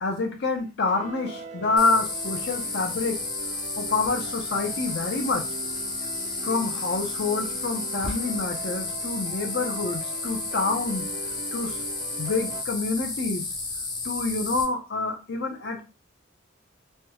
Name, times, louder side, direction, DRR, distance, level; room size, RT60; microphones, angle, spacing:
voice 1, 0.0-3.2 3.8-5.4 6.4-11.1 11.5-11.8 12.2-13.5 14.0-15.8, left 3 dB, 55° left, 4 dB, 0.7 m, -27 dB
sound 1, 0.8-12.6, right 4 dB, 35° right, 0.4 m, -41 dB
sound 2, 1.8-14.6, left 3 dB, 20° left, 0.5 m, -32 dB
3.3 x 2.3 x 3.0 m, 0.29 s
head